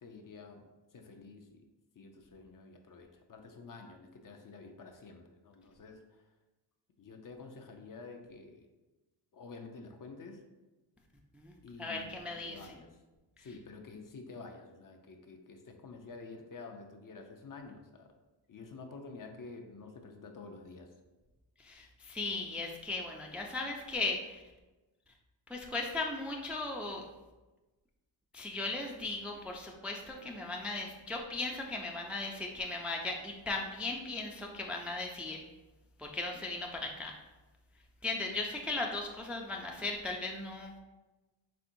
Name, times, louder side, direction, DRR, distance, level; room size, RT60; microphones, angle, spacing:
voice 1, 0.0-0.6 0.9-1.6 2.0-6.2 7.0-8.7 9.3-10.4 11.6-12.9 13.4-18.1 18.5-20.9, left 4 dB, 45° left, 3 dB, 0.6 m, -49 dB
voice 2, 11.3-12.7 21.6-24.4 25.5-27.0 28.3-35.4 36.0-37.2 38.0-40.8, left 3 dB, 5° right, 1 dB, 0.4 m, -37 dB
4.3 x 3.5 x 2.6 m, 1.1 s
cardioid pair, 80°, 46 cm